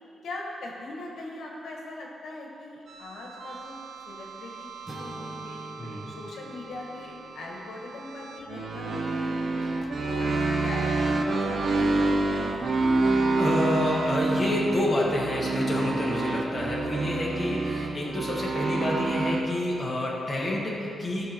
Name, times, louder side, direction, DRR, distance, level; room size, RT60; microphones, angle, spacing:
voice 1, 0.2-3.8 4.1-5.6 6.0-9.5 10.0-10.3 10.6-12.6 17.3-17.7 18.0-18.4, left 2 dB, 70° left, -2 dB, 1.6 m, -41 dB
sound 1, 2.9-19.4, right 2 dB, 45° right, 0.9 m, -28 dB
sound 2, 4.9-8.9, right 1 dB, 20° right, 1.1 m, -45 dB
voice 2, 13.4-21.3, left 1 dB, 15° left, -5 dB, 1.5 m, -28 dB
15.5 x 5.7 x 4.5 m, 2.8 s
wide cardioid pair, 175°, 0 cm